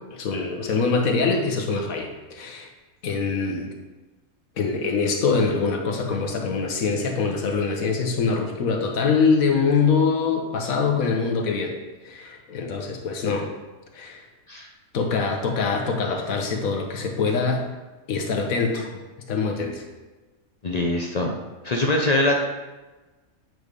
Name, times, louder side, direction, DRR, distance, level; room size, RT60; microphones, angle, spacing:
voice 1, 0.1-2.7 3.0-3.7 4.6-11.8 12.0-13.5 13.9-14.2 14.9-17.7 18.1-18.9 19.3-19.8, left 4 dB, 80° left, 2 dB, 1.4 m, -24 dB
voice 2, 20.6-21.4 21.6-22.4, left 2 dB, 55° left, 2 dB, 0.4 m, -22 dB
7.8 x 3.3 x 5.2 m, 1.2 s
omnidirectional pair, 1.4 m